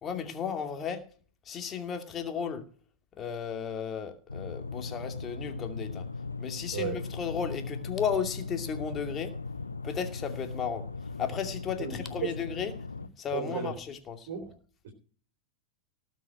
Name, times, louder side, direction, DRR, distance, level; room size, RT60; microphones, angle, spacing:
voice 1, 0.0-1.0 1.4-2.6 3.2-6.1 6.4-9.3 9.8-12.7 13.2-14.3, left 7 dB, 25° left, 6 dB, 2.5 m, -34 dB
sound 1, 4.3-13.1, left 4 dB, 80° left, 0.8 m, -38 dB
voice 2, 11.8-12.3 13.3-13.8 14.3-14.5 14.8-14.9, right 7 dB, 55° right, 5 dB, 3.2 m, -34 dB
18.5 x 6.3 x 6.2 m, 0.43 s
figure-of-eight pair, 90°, 0 cm